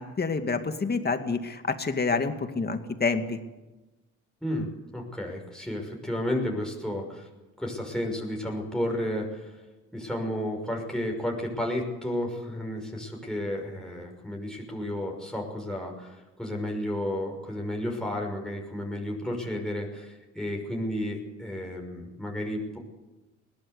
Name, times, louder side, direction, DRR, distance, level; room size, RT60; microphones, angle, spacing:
voice 1, 0.0-3.4, left 4 dB, 35° left, 7 dB, 2.3 m, -28 dB
voice 2, 4.4-7.3 7.6-9.6 9.9-22.8, left 1 dB, ahead, -1 dB, 6.0 m, -32 dB
21.5 x 18.0 x 8.3 m, 1.1 s
cardioid pair, 90°, 30 cm